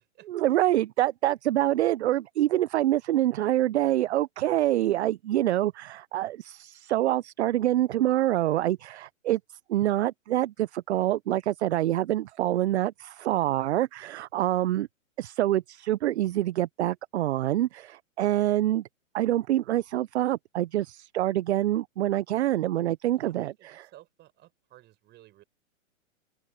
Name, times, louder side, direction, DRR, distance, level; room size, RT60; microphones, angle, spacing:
voice 1, 0.3-9.4 9.7-14.9 15.2-18.8 19.1-23.9, right 14 dB, 55° right, 0.7 m, -26 dB
voice 2, 23.1-25.4, right 15 dB, 25° right, 5.1 m, -56 dB
open air
hypercardioid pair, 130°, 40 cm